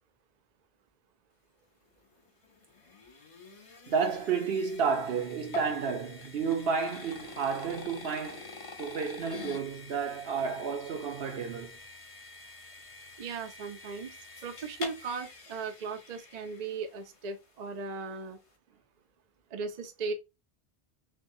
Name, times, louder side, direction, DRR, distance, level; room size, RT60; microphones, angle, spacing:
sound 1, 2.0-17.2, left 3 dB, 35° left, 0.7 m, -46 dB
voice 1, 3.9-8.5 8.8-11.8, right 5 dB, 65° right, 0.9 m, -31 dB
voice 2, 13.2-14.1 14.4-18.4 19.5-20.1, right 4 dB, 50° right, 0.6 m, -37 dB
6.1 x 2.2 x 2.7 m
omnidirectional pair, 1.1 m